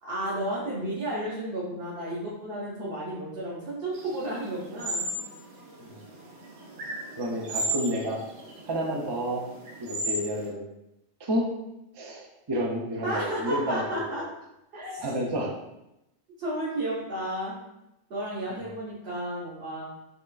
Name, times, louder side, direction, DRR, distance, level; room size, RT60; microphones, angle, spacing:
voice 1, 0.0-5.1 13.0-14.2 14.7-15.2 16.4-17.6 18.1-19.8, right 1 dB, 60° right, -9 dB, 1.1 m, -32 dB
sound 1, 3.9-10.5, right 1 dB, 80° right, 1.0 m, -35 dB
voice 2, 7.2-8.2 8.6-9.4 9.8-10.7 11.2-11.5 11.9-14.3 15.0-15.5, equal, 40° right, -2 dB, 0.4 m, -30 dB
5.4 x 2.4 x 2.3 m, 0.89 s
omnidirectional pair, 1.2 m